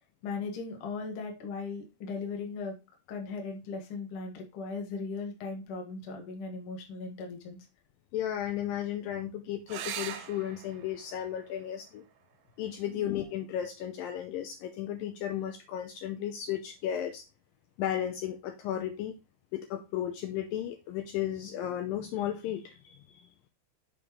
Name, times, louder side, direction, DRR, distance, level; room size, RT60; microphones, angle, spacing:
voice 1, 0.2-2.7 3.1-7.6 12.8-13.1, left 4 dB, 60° left, 2 dB, 1.4 m, -38 dB
voice 2, 8.1-12.0 12.6-17.2 17.8-19.2 19.5-23.0, left 11 dB, 85° left, 6 dB, 2.1 m, -34 dB
sound 1, 9.7-14.7 16.6-17.2 20.7-20.8 21.1-21.2, right 10 dB, 90° right, 2.6 m, -45 dB
6.5 x 5.1 x 3.1 m, 0.27 s
omnidirectional pair, 4.5 m